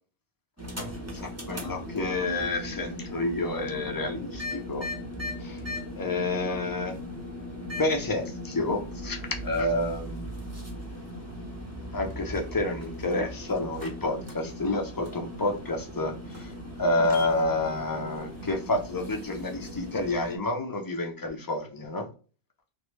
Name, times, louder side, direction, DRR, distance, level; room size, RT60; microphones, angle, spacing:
sound 1, 0.6-20.4, left 1 dB, 15° right, 0.7 m, -38 dB
voice 1, 1.1-4.9 5.4-5.6 6.0-7.0 7.8-10.3 10.9-11.0 11.9-16.5 16.8-22.1, left 2 dB, 30° left, 2 dB, 0.4 m, -29 dB
3.0 x 2.6 x 3.2 m, 0.35 s
omnidirectional pair, 1.3 m